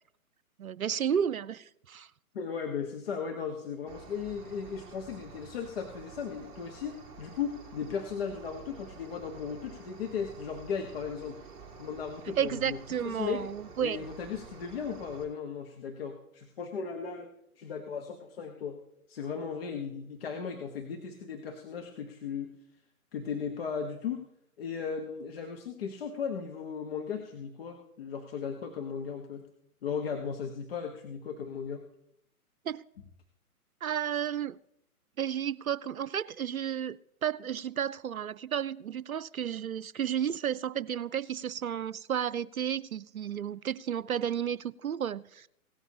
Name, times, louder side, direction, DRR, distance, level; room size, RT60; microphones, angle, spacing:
voice 1, 0.6-2.1 12.4-14.0 32.7-32.8 33.8-34.6 35.2-45.5, right 9 dB, 70° right, 0.6 m, -32 dB
voice 2, 2.3-11.4 11.8-13.4 13.8-18.8 19.1-22.5 23.1-24.2 24.6-29.4 29.8-31.9, left 6 dB, 40° left, 1.2 m, -36 dB
Cricket, 3.9-15.2, right 5 dB, 10° right, 1.5 m, -50 dB
17.0 x 13.5 x 2.9 m
figure-of-eight pair, 125°, 44 cm